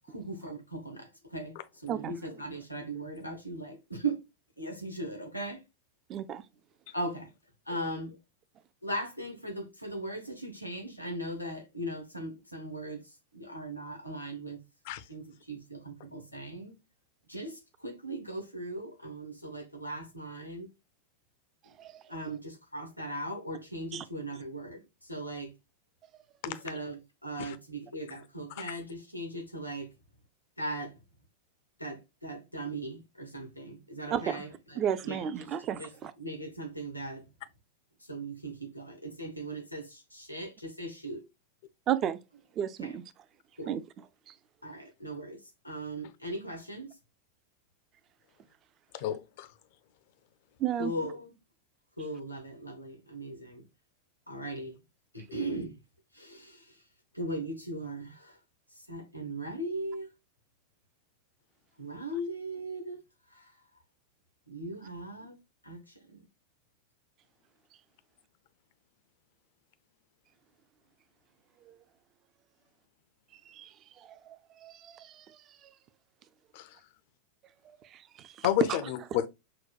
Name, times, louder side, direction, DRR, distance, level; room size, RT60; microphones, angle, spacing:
voice 1, 0.1-4.2 4.6-5.6 6.9-7.3 7.7-8.2 8.8-13.0 13.3-14.6 15.1-16.7 17.3-20.7 21.6-21.7 22.1-25.5 26.4-29.9 30.6-30.9 31.8-35.5 35.8-35.9 36.2-37.2 38.0-41.2 42.8-42.9 43.6-43.7 44.6-47.0 50.8-51.3 52.0-53.6 54.3-54.8 55.1-55.8 56.1-56.8 57.1-58.4 58.9-60.1 61.8-63.0 63.3-63.5 64.5-65.4 65.6-66.2, right 1 dB, 90° left, 0.8 m, -39 dB
voice 2, 6.1-6.4 21.8-22.3 23.9-24.0 34.1-34.4 34.8-36.1 41.9-42.2 42.6-43.0 43.7-43.8 44.3-44.4 50.6-50.9 71.7-71.8 73.5-75.7 77.6-78.8, right 10 dB, 30° right, 0.4 m, -34 dB
voice 3, 48.9-49.5 76.5-76.8 78.4-79.3, left 11 dB, 50° left, 0.4 m, -30 dB
5.8 x 2.2 x 2.3 m
figure-of-eight pair, 90°, 0 cm